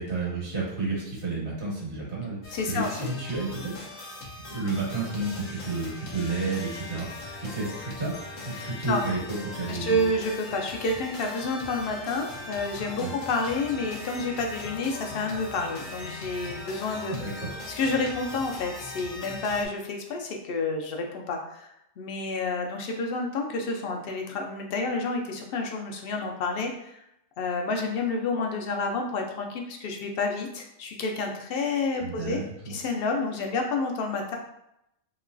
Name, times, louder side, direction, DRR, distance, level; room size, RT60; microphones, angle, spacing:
voice 1, 0.0-3.9 4.4-10.0 13.0-13.1 17.1-17.6 32.0-32.8, right 3 dB, 60° right, -5 dB, 1.4 m, -31 dB
sound 1, 2.4-19.7, left 3 dB, 80° left, 1.0 m, -40 dB
voice 2, 2.5-3.1 8.5-9.0 9.7-17.1 17.7-21.7 22.0-27.0 27.4-32.4 32.7-34.4, left 3 dB, 60° left, 2 dB, 0.6 m, -29 dB
3.0 x 2.9 x 2.5 m, 0.80 s
omnidirectional pair, 1.3 m